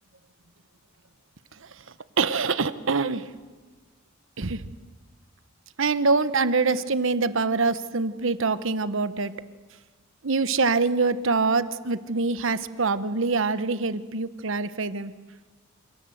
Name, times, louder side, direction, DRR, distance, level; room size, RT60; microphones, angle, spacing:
voice 1, 2.2-3.3 4.4-4.7 5.8-9.3 10.2-15.1, right 4 dB, 65° right, 13 dB, 1.1 m, -24 dB
28.0 x 26.0 x 7.9 m, 1.4 s
head